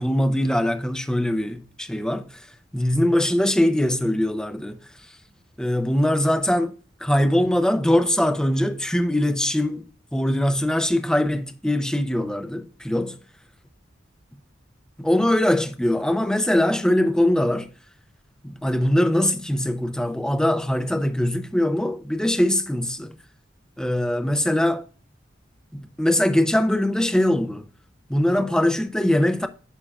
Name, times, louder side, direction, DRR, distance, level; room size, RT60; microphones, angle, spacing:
voice 1, 0.0-2.3 2.7-4.8 5.6-6.7 7.0-13.1 15.0-17.7 18.4-23.1 23.8-24.8 25.7-27.6 28.1-29.5, left 1 dB, 5° left, 0.5 m, -22 dB
9.9 x 5.5 x 2.3 m
head